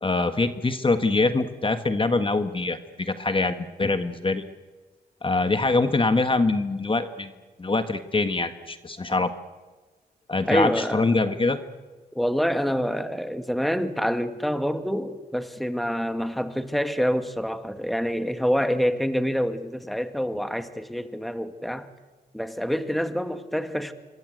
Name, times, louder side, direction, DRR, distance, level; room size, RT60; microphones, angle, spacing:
voice 1, 0.0-4.4 5.2-7.3 7.6-9.3 10.3-11.6, left 3 dB, 30° left, 1.7 m, -24 dB
voice 2, 10.5-11.1 12.2-21.9 22.3-23.9, equal, ahead, 2.0 m, -26 dB
27.0 x 22.5 x 8.1 m
cardioid pair, 60°, 17 cm